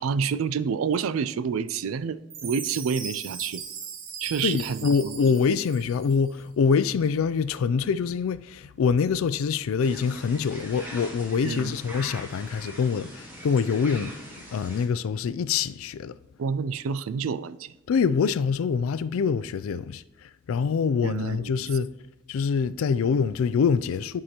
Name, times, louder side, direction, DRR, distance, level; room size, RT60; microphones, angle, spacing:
voice 1, 0.0-3.6 4.2-5.2 11.4-11.7 16.4-17.7 21.0-21.5, right 6 dB, 90° right, 0.4 m, -28 dB
Chime, 2.3-6.3, right 6 dB, 70° right, 1.0 m, -39 dB
voice 2, 4.4-14.2 14.5-16.2 17.9-21.9 22.3-24.2, left 6 dB, 85° left, 0.3 m, -25 dB
sound 1, 9.8-14.9, equal, 10° right, 1.0 m, -42 dB
11.0 x 4.8 x 2.9 m
head